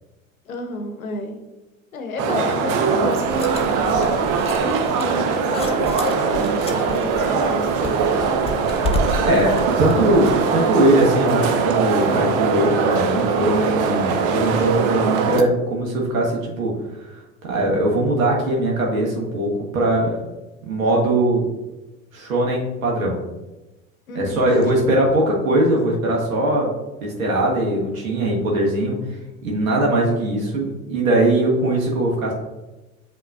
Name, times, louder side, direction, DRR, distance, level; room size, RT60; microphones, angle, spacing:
voice 1, 0.5-1.4 1.9-4.2 4.5-8.1 24.1-24.9, left 3 dB, 85° left, 5 dB, 0.8 m, -31 dB
sound 1, 2.2-15.4, right 5 dB, 50° right, 0.7 m, -21 dB
sound 2, 3.2-10.4, left 2 dB, 15° left, 0.5 m, -31 dB
voice 2, 8.8-20.2 20.6-21.5 22.1-23.2 24.1-26.7 27.0-29.0 29.4-32.3, right 1 dB, 75° right, -2 dB, 1.2 m, -20 dB
7.7 x 2.9 x 2.4 m, 1.1 s
figure-of-eight pair, 70°, 41 cm